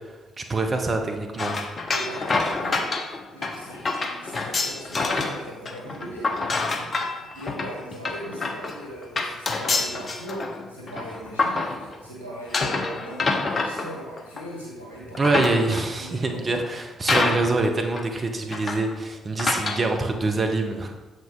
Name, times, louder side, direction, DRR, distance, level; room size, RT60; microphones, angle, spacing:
voice 1, 0.4-1.5 15.2-21.0, right 3 dB, 35° right, 4 dB, 0.8 m, -25 dB
sound 1, 1.4-5.4 5.7-12.1 12.5-14.6 15.0-16.0 16.6-16.7 17.1-17.7 18.0-18.1 18.5-18.9 19.4-19.9, left 3 dB, 40° left, 0.8 m, -27 dB
voice 2, 1.9-15.5 16.0-16.6, right 1 dB, 85° left, -6 dB, 1.6 m, -39 dB
7.4 x 5.2 x 3.8 m, 1.2 s
figure-of-eight pair, 40°, 0 cm